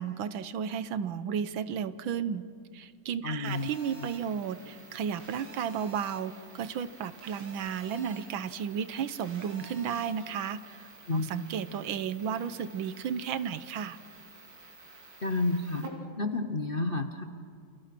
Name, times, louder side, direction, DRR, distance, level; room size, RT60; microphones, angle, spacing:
voice 1, 0.0-2.4 2.7-14.0, right 7 dB, 75° right, 13 dB, 1.7 m, -33 dB
voice 2, 3.2-3.7 11.1-11.3 15.2-15.9 16.2-17.2, left 2 dB, 35° left, 7 dB, 1.0 m, -30 dB
Telephone, 3.4-15.9, right 3 dB, 60° right, 3.6 m, -50 dB
29.0 x 29.0 x 6.0 m, 2.4 s
omnidirectional pair, 2.2 m